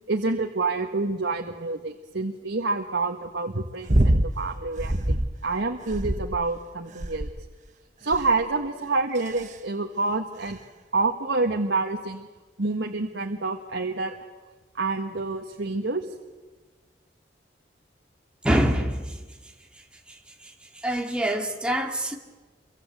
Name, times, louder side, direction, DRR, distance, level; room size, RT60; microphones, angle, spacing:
voice 1, 0.1-5.2 5.4-7.3 8.0-10.6 10.9-12.3 12.6-14.2 14.7-16.1, right 3 dB, 85° right, 3 dB, 1.6 m, -27 dB
sound 1, 3.9-4.3 4.8-5.4 5.9-6.5 7.0-7.5 8.1-8.5 9.2-9.5 10.5-10.6, right 1 dB, 40° right, 1.2 m, -24 dB
voice 2, 18.4-19.0 20.8-22.2, right 1 dB, 5° right, 1 dB, 2.4 m, -24 dB
26.5 x 24.5 x 8.1 m, 1.3 s
head